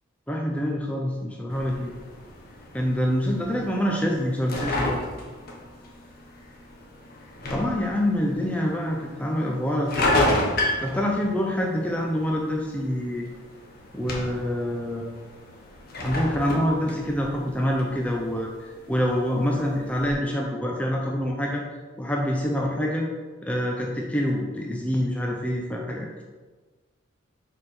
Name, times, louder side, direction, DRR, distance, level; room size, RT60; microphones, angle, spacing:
voice 1, 0.3-1.9 2.7-5.0 7.5-10.4 10.8-13.3 13.9-15.1 16.0-21.6 22.0-23.1 23.4-26.2, equal, 5° left, -1 dB, 0.6 m, -26 dB
sound 1, 1.5-20.1, left 1 dB, 50° left, 1.2 m, -32 dB
6.4 x 5.0 x 4.3 m, 1.3 s
head